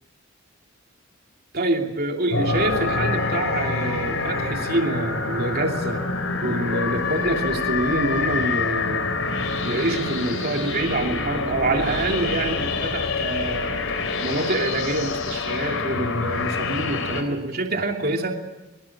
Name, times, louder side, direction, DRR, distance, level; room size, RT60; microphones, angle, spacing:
voice 1, 1.5-6.1 6.4-9.1 9.6-18.4, right 2 dB, 45° right, 3 dB, 2.8 m, -26 dB
sound 1, 2.3-17.2, left 3 dB, 70° left, 3.8 m, -26 dB
23.5 x 22.0 x 7.3 m, 1.0 s
head